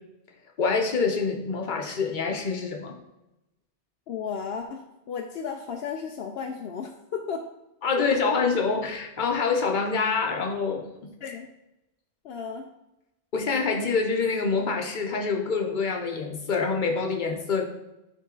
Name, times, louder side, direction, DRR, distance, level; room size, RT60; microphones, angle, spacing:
voice 1, 0.6-2.9 7.8-11.1 13.3-17.7, left 4 dB, 50° left, 3 dB, 1.0 m, -26 dB
voice 2, 4.1-7.4 8.0-8.1 11.2-11.5 12.2-12.6, left 6 dB, 75° left, 3 dB, 0.8 m, -34 dB
10.0 x 3.9 x 3.8 m, 0.94 s
omnidirectional pair, 1.1 m